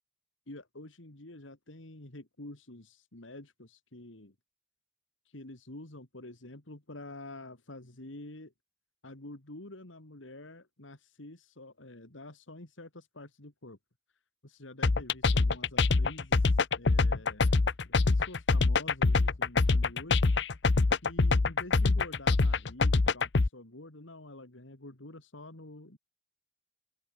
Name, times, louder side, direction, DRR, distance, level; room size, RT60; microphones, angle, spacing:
voice 1, 0.5-4.3 5.2-8.5 9.0-13.8 14.1-20.6 21.0-26.0, left 2 dB, 85° left, 2.8 m, -48 dB
sound 1, 14.8-23.5, left 3 dB, 60° left, 0.8 m, -24 dB
open air
head